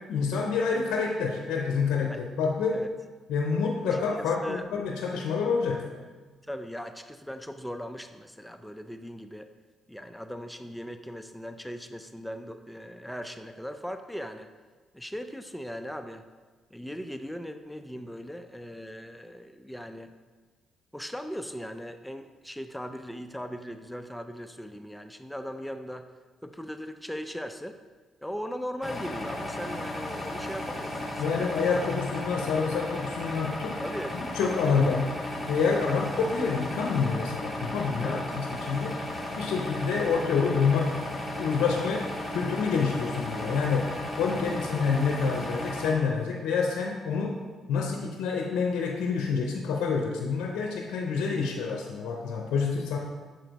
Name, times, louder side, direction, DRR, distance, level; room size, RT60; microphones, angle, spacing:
voice 1, 0.1-2.8 3.3-5.9 31.2-33.8 34.1-35.1 35.5-41.0 41.4-47.4 47.7-53.0, left 5 dB, 75° left, 1 dB, 0.6 m, -27 dB
voice 2, 3.9-4.6 6.5-9.5 9.9-14.5 14.9-16.3 16.7-20.1 20.9-26.1 26.4-27.8 28.2-31.5 33.8-34.2 34.6-34.8 35.8-36.3 38.0-38.3 44.3-44.6 47.2-47.3, equal, 5° left, 8 dB, 0.4 m, -39 dB
sound 1, 28.8-45.9, left 1 dB, 20° left, 1.7 m, -35 dB
6.6 x 4.4 x 4.0 m, 1.4 s
supercardioid pair, 60°, 0 cm